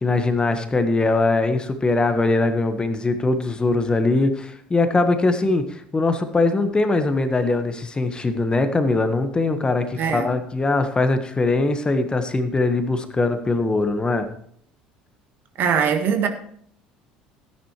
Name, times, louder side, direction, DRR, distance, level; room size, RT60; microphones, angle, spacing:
voice 1, 0.0-14.3, left 3 dB, 20° left, 1.4 m, -21 dB
voice 2, 10.0-10.3 15.6-16.3, right 7 dB, 50° right, 1.6 m, -21 dB
13.5 x 10.5 x 3.2 m
hypercardioid pair, 65°, 4 cm